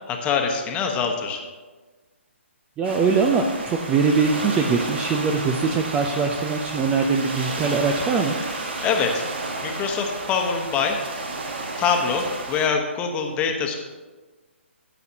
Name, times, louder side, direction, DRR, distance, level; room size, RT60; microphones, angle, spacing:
voice 1, 0.1-1.4 8.8-9.2 9.6-11.0 11.8-13.7, left 6 dB, 15° left, 3 dB, 1.2 m, -24 dB
voice 2, 2.8-8.4, right 5 dB, 15° right, 4 dB, 0.6 m, -22 dB
sound 1, 2.8-12.7, right 2 dB, 55° right, 1.7 m, -32 dB
15.5 x 8.0 x 2.9 m, 1.3 s
figure-of-eight pair, 135°, 7 cm